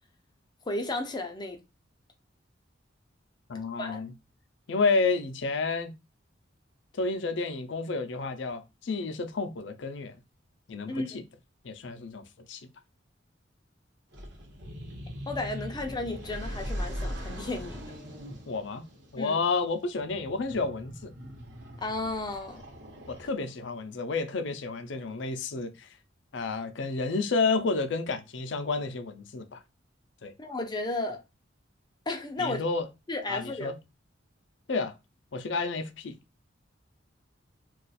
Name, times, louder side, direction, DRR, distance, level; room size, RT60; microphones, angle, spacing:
voice 1, 0.7-1.6 3.8-4.0 10.9-11.2 15.3-17.9 19.2-19.4 21.8-22.6 30.4-31.2 32.1-32.6 33.1-33.7, left 2 dB, 25° left, 0.5 m, -33 dB
voice 2, 3.5-4.1 4.7-5.9 7.0-10.1 10.7-11.2 11.6-12.7 18.5-18.9 19.1-21.1 23.1-25.9 26.3-29.6 30.2-30.3 32.4-32.9 33.3-33.7 34.7-34.9 35.3-36.2, left 4 dB, 70° left, 0.5 m, -30 dB
sound 1, 14.1-23.6, equal, 65° right, 1.0 m, -40 dB
2.4 x 2.3 x 4.0 m
head